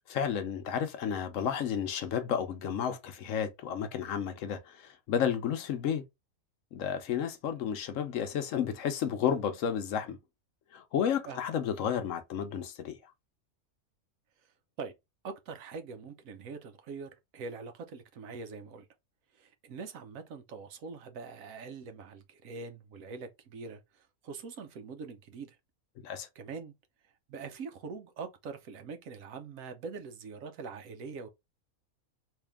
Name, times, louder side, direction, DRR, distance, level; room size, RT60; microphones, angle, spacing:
voice 1, 0.1-6.0 6.7-10.2 10.7-12.9 26.0-26.3, left 8 dB, 70° left, 1.0 m, -32 dB
voice 2, 15.2-18.9 19.3-25.6 26.3-26.7 27.3-31.3, right 4 dB, 70° right, 1.1 m, -43 dB
3.5 x 2.7 x 3.4 m
omnidirectional pair, 1.5 m